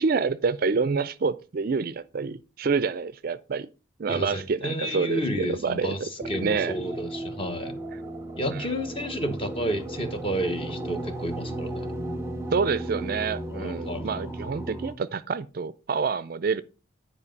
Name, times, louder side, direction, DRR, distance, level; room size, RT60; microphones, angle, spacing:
voice 1, 0.0-3.7 4.0-6.8 8.5-8.7 12.5-16.6, right 5 dB, 45° right, 0.4 m, -27 dB
voice 2, 4.1-7.8 8.4-11.9 13.5-14.3, equal, 25° left, 1.1 m, -31 dB
sound 1, 6.2-14.9, right 1 dB, 15° right, 0.7 m, -35 dB
9.9 x 5.0 x 5.3 m
head